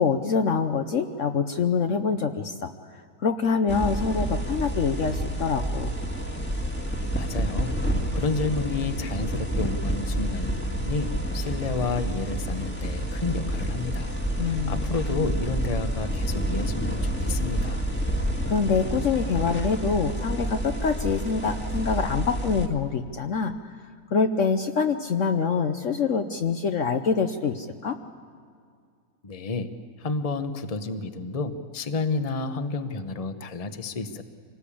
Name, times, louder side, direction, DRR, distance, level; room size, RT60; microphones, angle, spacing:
voice 1, 0.0-2.7 3.2-5.9 14.4-14.8 18.4-23.5 24.1-28.0, left 5 dB, 55° left, 6 dB, 1.1 m, -25 dB
sound 1, 3.7-22.7, right 1 dB, 5° left, 1.6 m, -29 dB
voice 2, 7.1-7.8 8.1-14.1 14.4-17.9 29.2-29.7 30.0-34.2, left 3 dB, 25° left, 9 dB, 1.0 m, -30 dB
25.5 x 19.0 x 8.6 m, 2.2 s
omnidirectional pair, 1.7 m